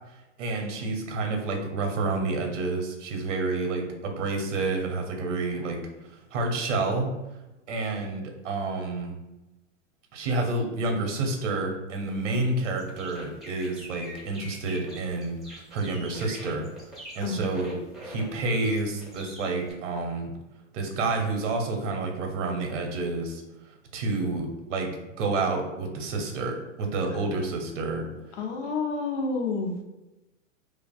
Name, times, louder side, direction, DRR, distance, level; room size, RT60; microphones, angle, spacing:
voice 1, 0.4-7.1 7.7-9.2 10.1-16.7 17.1-20.3 20.7-28.1, right 3 dB, 70° right, 3 dB, 0.7 m, -29 dB
sound 1, 12.0-19.7, equal, ahead, 0.4 m, -45 dB
voice 2, 28.3-29.8, left 4 dB, 60° left, 1 dB, 0.7 m, -29 dB
2.4 x 2.4 x 2.3 m, 1.0 s
hypercardioid pair, 115°, 38 cm